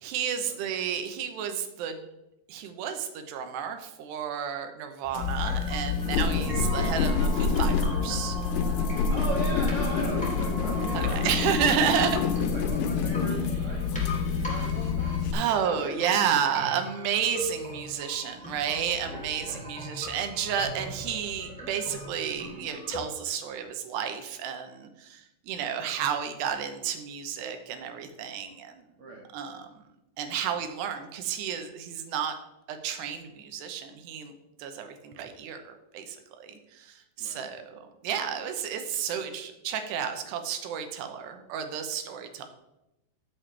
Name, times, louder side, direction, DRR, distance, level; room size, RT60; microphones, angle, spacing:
voice 1, 0.0-2.1 2.5-8.4 10.9-12.2 15.3-28.8 29.3-29.7 30.2-32.3 32.7-34.3 34.6-42.5, right 8 dB, 80° right, 6 dB, 3.1 m, -31 dB
sound 1, 5.0-23.0, left 1 dB, ahead, 2.5 m, -41 dB
sound 2, 5.1-15.3, left 5 dB, 80° left, 3.1 m, -27 dB
sound 3, 6.1-12.4, right 1 dB, 65° left, 2.7 m, -40 dB
voice 2, 6.1-6.4 8.9-11.4 12.3-15.3 15.6-16.0 19.4-19.6 29.0-29.3 37.2-37.5, right 3 dB, 60° right, -2 dB, 1.4 m, -39 dB
14.0 x 7.5 x 3.3 m, 0.90 s
omnidirectional pair, 4.8 m